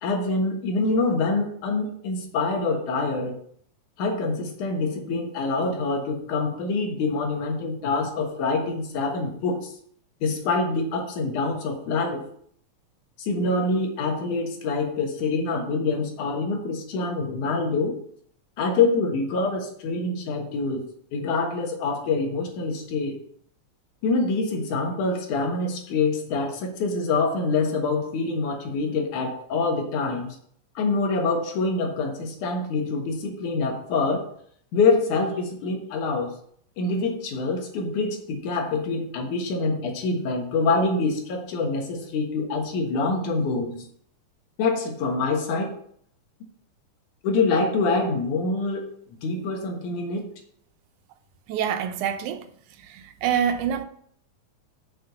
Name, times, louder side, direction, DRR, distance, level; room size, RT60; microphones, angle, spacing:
voice 1, 0.0-3.4 4.0-9.7 10.2-12.2 13.2-18.0 18.6-20.8 21.1-23.2 24.0-30.4 30.8-34.3 34.7-36.4 36.8-43.8 44.6-45.8 47.2-48.9 49.2-50.2, left 3 dB, 80° left, 3.0 m, -25 dB
voice 2, 51.5-52.5 52.9-53.9, right 8 dB, 85° right, 2.2 m, -26 dB
6.7 x 6.6 x 6.8 m
omnidirectional pair, 3.4 m